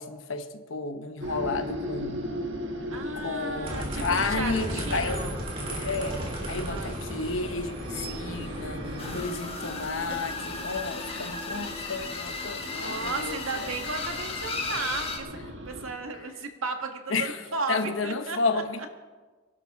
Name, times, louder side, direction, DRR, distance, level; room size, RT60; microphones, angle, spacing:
voice 1, 0.0-2.3 3.1-5.3 5.7-13.7 16.1-16.3 17.1-18.9, left 4 dB, 75° left, 1.1 m, -32 dB
sound 1, 1.2-15.9, equal, 65° right, 1.6 m, -38 dB
voice 2, 2.9-5.4 6.5-6.9 9.0-9.2 12.7-18.6, right 3 dB, 85° right, 1.6 m, -35 dB
sound 2, 3.6-9.2, right 1 dB, 25° right, 3.3 m, -35 dB
sound 3, 9.0-15.2, left 3 dB, 30° left, 1.6 m, -35 dB
24.5 x 11.5 x 3.7 m
head